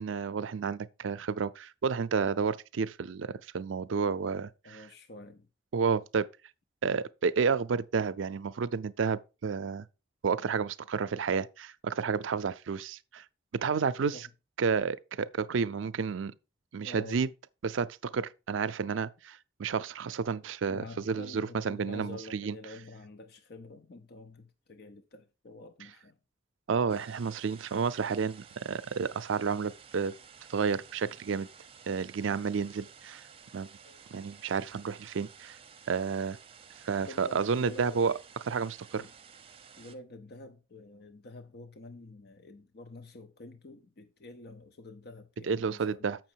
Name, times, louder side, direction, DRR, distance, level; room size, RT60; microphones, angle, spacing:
voice 1, 0.0-4.8 5.7-6.3 6.8-9.9 10.2-13.2 13.5-14.2 14.6-16.3 16.7-17.3 17.6-22.6 26.7-30.1 30.5-31.5 31.9-33.2 33.5-33.7 34.1-35.6 35.9-36.4 36.9-38.1 38.5-39.0 45.5-46.2, right 5 dB, 80° right, 0.5 m, -31 dB
voice 2, 4.6-5.5 14.0-14.2 16.8-17.3 20.7-26.2 30.0-30.1 32.0-32.1 33.8-34.1 37.1-38.1 38.9-39.1 39.8-46.1, left 2 dB, 55° left, 0.7 m, -48 dB
sound 1, 26.9-40.0, right 7 dB, 30° right, 0.7 m, -54 dB
7.5 x 6.0 x 4.5 m
head